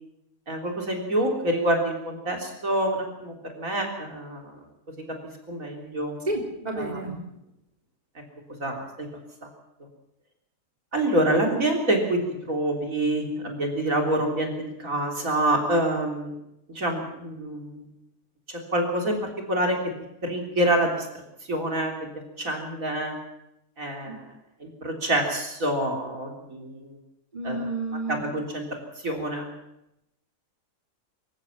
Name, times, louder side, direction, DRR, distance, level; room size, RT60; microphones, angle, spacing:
voice 1, 0.5-4.4 5.5-6.1 6.8-7.0 8.6-8.8 10.9-12.2 12.5-16.3 16.8-17.8 18.7-19.2 19.5-19.8 20.2-21.1 21.5-21.9 22.4-23.1 23.8-24.2 24.6-26.9 27.4-27.7 27.9-28.6 29.0-29.5, right 1 dB, 65° right, 1 dB, 3.9 m, -26 dB
voice 2, 6.3-7.1 24.1-24.2 27.3-28.2, right 2 dB, 25° right, 0 dB, 3.6 m, -30 dB
25.5 x 14.5 x 7.4 m, 0.86 s
omnidirectional pair, 1.6 m